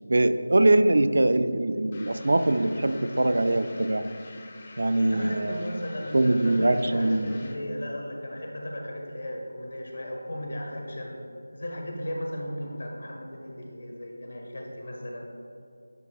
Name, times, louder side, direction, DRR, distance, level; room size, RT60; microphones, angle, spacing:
voice 1, 0.1-4.0 4.8-5.6 6.1-7.4, right 2 dB, 60° right, 10 dB, 0.4 m, -22 dB
sound 1, 1.9-7.7, left 2 dB, 25° left, 0.8 m, -49 dB
voice 2, 5.1-11.1 11.5-15.2, equal, 55° left, 0 dB, 1.4 m, -36 dB
10.5 x 6.0 x 2.4 m, 2.6 s
figure-of-eight pair, 165°, 0 cm